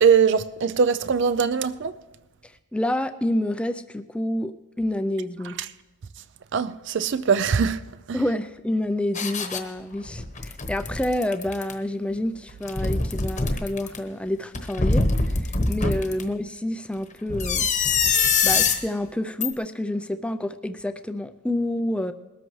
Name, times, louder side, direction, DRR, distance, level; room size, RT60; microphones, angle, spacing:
voice 1, 0.0-1.9 6.5-8.2, right 6 dB, 55° right, 0.4 m, -21 dB
voice 2, 2.4-5.6 8.1-17.7 18.4-22.1, left 1 dB, 5° left, 0.4 m, -28 dB
sound 1, 9.1-9.6 10.1-11.7 12.5-14.0 14.5-16.2 17.3-18.8 19.4-19.5, left 4 dB, 30° left, 1.0 m, -23 dB
21.0 x 13.0 x 3.2 m
head